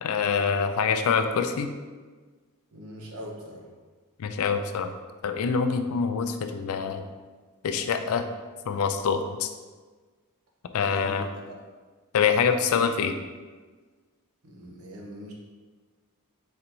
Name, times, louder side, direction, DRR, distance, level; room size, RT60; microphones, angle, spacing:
voice 1, 0.0-1.7 4.2-4.9 5.2-7.1 7.6-8.3 8.7-9.5 10.7-11.3 12.1-13.2, left 6 dB, 70° left, 8 dB, 0.4 m, -25 dB
voice 2, 2.7-3.7 10.8-11.6 14.4-15.3, equal, 70° right, -1 dB, 0.9 m, -41 dB
4.4 x 4.2 x 2.6 m, 1.4 s
head